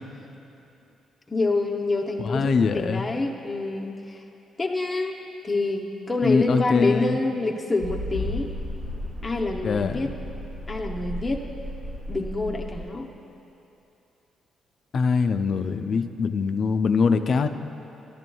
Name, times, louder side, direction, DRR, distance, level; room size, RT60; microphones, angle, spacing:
voice 1, 1.3-4.2 4.6-5.2 5.4-8.5 9.2-10.1 10.7-11.4 12.1-13.1, left 2 dB, 25° left, -2 dB, 0.7 m, -27 dB
voice 2, 2.2-3.1 6.2-7.2 9.6-10.1 14.9-17.5, left 5 dB, 55° left, 8 dB, 0.4 m, -23 dB
sound 1, 7.8-12.9, left 1 dB, 90° right, 1.8 m, -34 dB
13.5 x 11.0 x 2.3 m, 2.9 s
supercardioid pair, 65°, 0 cm